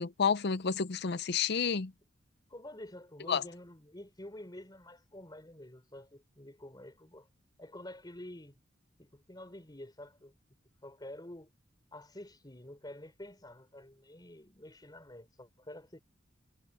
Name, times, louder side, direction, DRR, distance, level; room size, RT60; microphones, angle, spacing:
voice 1, 0.0-1.9 3.3-3.4, left 6 dB, 55° left, 0.6 m, -30 dB
voice 2, 2.5-7.3 7.6-8.6 9.0-10.3 10.8-11.5 11.9-16.0, left 1 dB, 20° left, 4.0 m, -49 dB
head